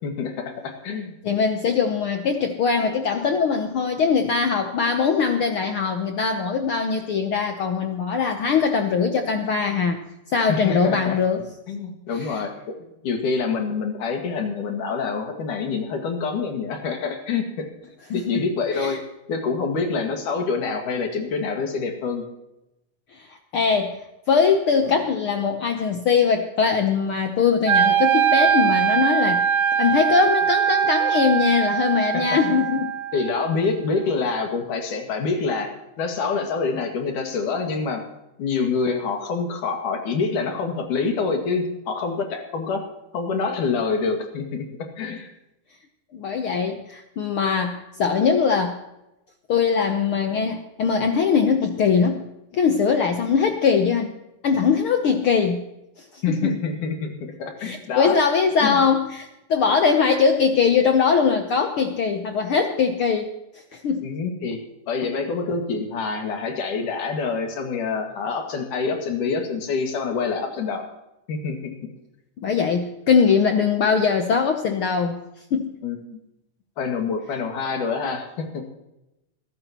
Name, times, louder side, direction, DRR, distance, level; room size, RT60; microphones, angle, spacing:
voice 1, 0.0-1.2 10.5-11.2 11.7-17.7 18.1-19.0 19.3-22.3 32.1-32.4 33.1-38.0 38.4-42.8 43.1-45.3 56.2-57.1 57.4-58.2 58.6-58.8 64.0-64.6 64.9-70.9 71.3-71.9 75.8-76.2 76.8-78.7, left 4 dB, 90° left, 3 dB, 3.7 m, -26 dB
voice 2, 1.2-10.0 10.3-11.4 12.1-12.5 18.1-18.4 18.7-19.0 23.1-23.3 23.5-23.9 24.3-29.4 29.8-32.9 46.1-48.8 49.5-54.1 54.4-55.6 56.1-56.6 57.6-63.3 63.7-64.1 72.4-75.2 75.5-75.7, left 6 dB, 65° left, 5 dB, 1.3 m, -21 dB
Wind instrument woodwind instrument, 27.7-33.7, right 8 dB, 65° right, 1.9 m, -21 dB
22.5 x 12.5 x 3.0 m, 0.90 s
omnidirectional pair, 3.5 m